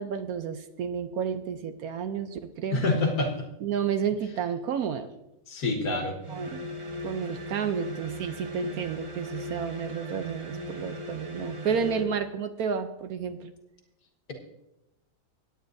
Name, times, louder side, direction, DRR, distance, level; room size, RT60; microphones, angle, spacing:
voice 1, 0.0-2.8 3.6-5.1 6.3-6.8 7.0-13.5, right 7 dB, 65° right, 9 dB, 1.0 m, -31 dB
voice 2, 2.7-3.5 5.5-6.2, left 2 dB, 60° left, 2 dB, 1.9 m, -26 dB
sound 1, 6.2-12.2, left 1 dB, 25° right, 0.8 m, -38 dB
18.5 x 9.0 x 2.6 m, 0.91 s
omnidirectional pair, 1.8 m